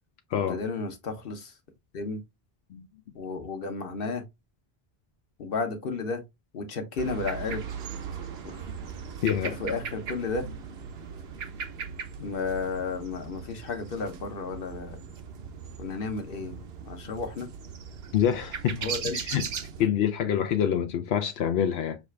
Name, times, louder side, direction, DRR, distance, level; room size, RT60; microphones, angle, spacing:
voice 1, 0.5-1.5 1.9-2.2 3.1-4.2 5.4-6.2 6.5-7.7 8.4-8.7 9.4-10.5 12.2-15.0 15.8-17.5 18.8-19.2 19.8-19.9, left 4 dB, 65° left, 1.2 m, -33 dB
sound 1, 7.0-19.8, right 6 dB, 80° right, 1.0 m, -38 dB
voice 2, 9.2-9.6 18.1-18.9 19.1-19.5 19.8-22.0, left 9 dB, 85° left, 0.9 m, -26 dB
6.2 x 2.4 x 3.2 m
omnidirectional pair, 1.0 m